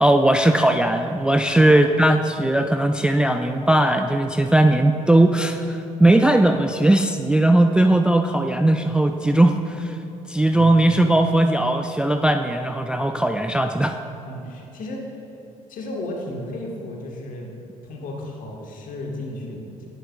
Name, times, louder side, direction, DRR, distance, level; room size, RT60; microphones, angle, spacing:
voice 1, 0.0-10.0 10.3-14.0, right 1 dB, 5° right, 6 dB, 0.3 m, -18 dB
voice 2, 1.4-2.0 10.4-11.1 14.2-15.2 15.7-17.5 17.8-19.9, left 1 dB, 50° left, 0 dB, 1.4 m, -34 dB
10.5 x 10.5 x 2.3 m, 2.8 s
figure-of-eight pair, 50°, 17 cm